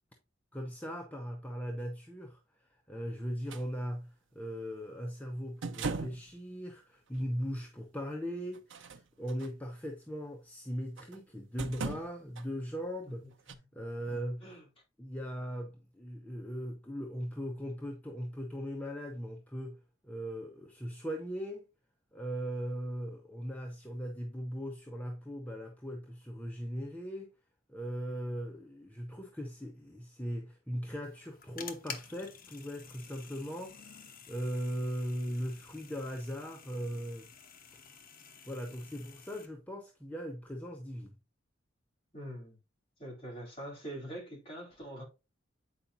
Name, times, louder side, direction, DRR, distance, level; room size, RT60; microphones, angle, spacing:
voice 1, 0.5-2.4 2.9-14.6 15.0-19.8 20.0-21.6 22.1-27.3 27.7-37.3 37.7-37.9 38.5-41.2, equal, 10° left, 0.9 m, -39 dB
sound 1, 3.5-3.6 5.6-6.3 7.2-7.3 8.5-9.5 11.0-11.2 11.6-12.5 13.5-13.6, right 4 dB, 70° right, 0.8 m, -38 dB
voice 2, 13.5-13.8 14.4-14.6 42.1-42.6 43.0-45.0, right 1 dB, 30° left, 3.9 m, -44 dB
sound 2, 31.0-39.5, left 6 dB, 45° left, 1.1 m, -50 dB
8.6 x 5.1 x 2.6 m
head